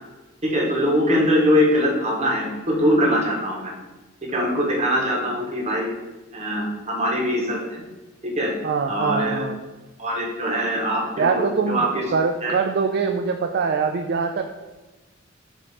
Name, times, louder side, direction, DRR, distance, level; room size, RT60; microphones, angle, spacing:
voice 1, 0.4-3.7 4.2-5.9 6.3-7.8 8.2-8.5 8.9-9.4 10.0-12.1 12.4-12.5, equal, 35° right, -2 dB, 1.5 m, -22 dB
voice 2, 8.6-9.6 11.2-11.8 12.1-14.5, right 5 dB, 50° right, 5 dB, 0.4 m, -23 dB
7.0 x 3.1 x 5.0 m, 1.2 s
head